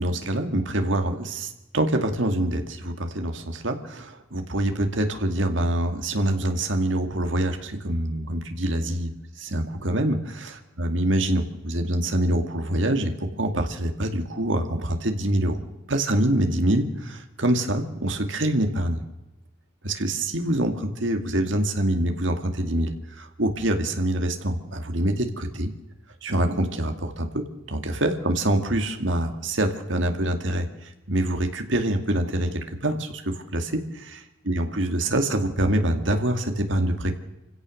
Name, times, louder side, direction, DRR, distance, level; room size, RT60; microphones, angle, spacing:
voice 1, 0.0-19.0 19.8-25.7 26.2-37.2, right 1 dB, 75° right, 5 dB, 2.3 m, -25 dB
26.5 x 16.0 x 6.5 m, 0.98 s
head